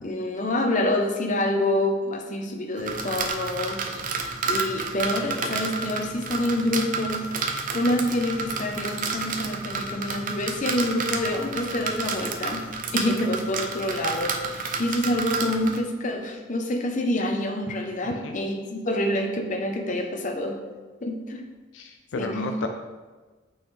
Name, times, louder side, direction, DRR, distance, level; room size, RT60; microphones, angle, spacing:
voice 1, 0.0-12.6 12.9-20.6 21.0-21.4 22.1-22.5, left 1 dB, 40° left, 3 dB, 0.7 m, -27 dB
sound 1, 2.8-15.8, right 4 dB, 45° right, 0.5 m, -30 dB
voice 2, 18.0-18.4 21.7-22.7, left 3 dB, 75° left, 5 dB, 0.4 m, -33 dB
8.6 x 4.0 x 3.2 m, 1.3 s
head